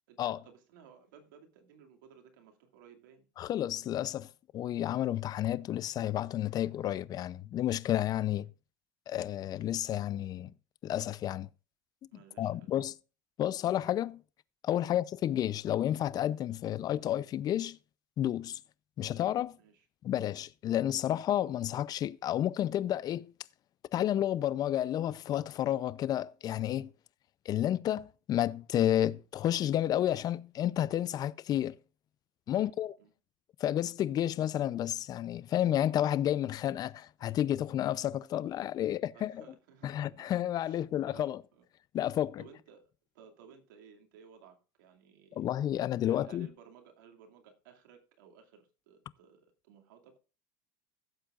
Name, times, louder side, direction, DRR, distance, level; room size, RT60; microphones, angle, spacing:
voice 1, 0.1-3.3 12.1-12.8 14.8-14.9 19.6-19.9 32.5-33.1 38.8-40.3 40.6-41.6 42.4-42.8 43.1-45.5 45.8-50.2, right 7 dB, 85° right, 2.4 m, -58 dB
voice 2, 3.4-8.5 9.1-10.5 10.8-11.5 12.4-12.9 13.4-14.2 14.6-17.8 18.2-18.6 19.0-19.6 20.0-23.3 23.9-26.9 27.5-31.8 32.5-32.9 33.6-39.4 39.8-41.4 41.9-42.4 45.4-46.5, left 11 dB, 40° left, 0.5 m, -31 dB
16.5 x 7.6 x 2.5 m
supercardioid pair, 120°, 10 cm